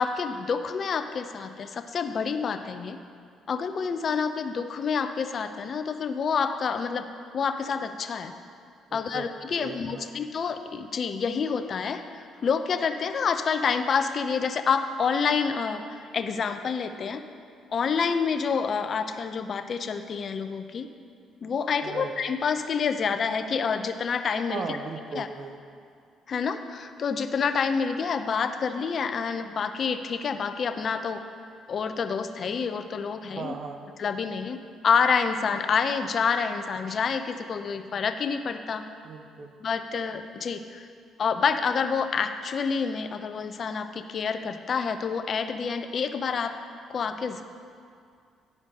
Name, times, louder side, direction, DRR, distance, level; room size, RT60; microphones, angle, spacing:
voice 1, 0.0-3.0 3.5-7.1 7.3-8.3 8.9-17.2 17.7-20.9 21.4-24.8 25.1-25.3 26.3-31.2 31.7-33.6 34.0-34.6 34.8-38.8 39.6-40.9 41.2-46.5 46.9-47.4, left 6 dB, 55° left, 8 dB, 0.6 m, -28 dB
voice 2, 8.9-9.3 9.6-10.1 21.8-22.1 24.5-25.6 33.4-33.8 39.0-39.5, right 5 dB, 55° right, 6 dB, 0.8 m, -37 dB
10.5 x 5.0 x 6.3 m, 2.3 s
supercardioid pair, 65°, 0 cm